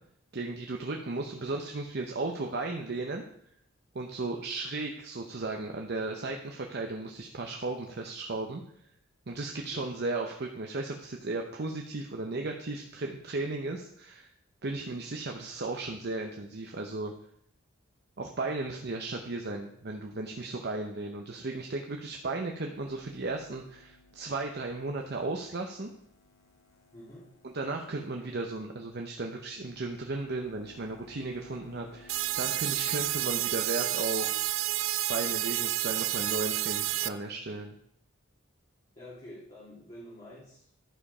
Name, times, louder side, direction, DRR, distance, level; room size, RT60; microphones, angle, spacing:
voice 1, 0.3-3.2 3.9-8.6 9.3-14.3 14.6-17.1 18.2-25.9 27.4-34.4 35.1-37.8, right 2 dB, 55° right, 2 dB, 0.8 m, -35 dB
sound 1, 22.7-34.1, left 2 dB, 75° left, 1.7 m, -58 dB
voice 2, 26.9-27.3 39.0-40.7, left 1 dB, 30° left, -7 dB, 2.3 m, -48 dB
sound 2, 32.1-37.1, right 14 dB, 75° right, 0.4 m, -30 dB
11.5 x 5.1 x 5.5 m, 0.70 s
head